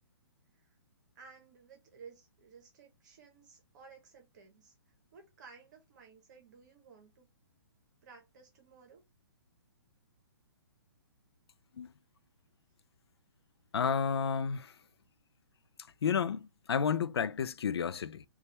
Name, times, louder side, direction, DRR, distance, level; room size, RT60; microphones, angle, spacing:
voice 1, 1.1-7.3 8.0-9.0 15.6-15.9, right 5 dB, 45° right, 0.9 m, -56 dB
voice 2, 13.7-14.7 16.0-18.2, left 6 dB, 80° left, 0.4 m, -31 dB
4.0 x 2.3 x 3.1 m
hypercardioid pair, 145°, 13 cm